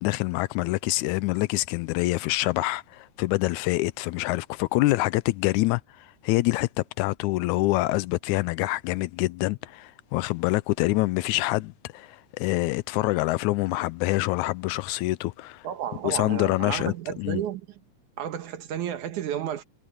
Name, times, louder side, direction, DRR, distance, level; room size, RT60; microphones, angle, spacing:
voice 1, 0.0-15.7 16.0-17.4, left 19 dB, 80° left, 1.9 m, -26 dB
voice 2, 15.6-17.6 18.2-19.6, right 10 dB, 80° right, 2.8 m, -32 dB
omnidirectional pair, 3.5 m